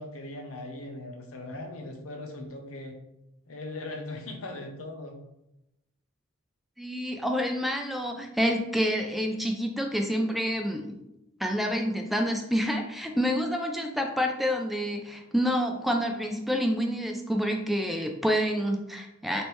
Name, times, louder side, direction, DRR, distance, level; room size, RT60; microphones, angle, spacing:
voice 1, 0.0-3.0 3.5-5.2, left 2 dB, 85° left, 4 dB, 0.8 m, -39 dB
voice 2, 6.8-10.9 11.4-19.5, equal, ahead, 3 dB, 0.3 m, -28 dB
3.2 x 2.9 x 4.5 m, 0.87 s
head